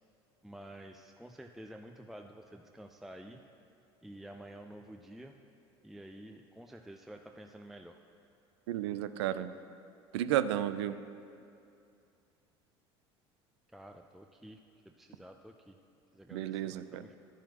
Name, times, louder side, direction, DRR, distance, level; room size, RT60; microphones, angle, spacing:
voice 1, 0.4-3.4 4.0-5.4 5.8-8.0 13.7-14.6 14.9-15.7 16.1-17.2, right 1 dB, ahead, 4 dB, 0.4 m, -50 dB
voice 2, 8.7-9.5 10.1-11.0 16.3-17.0, right 12 dB, 80° right, 13 dB, 0.4 m, -32 dB
11.5 x 10.0 x 2.9 m, 2.5 s
hypercardioid pair, 75°, 14 cm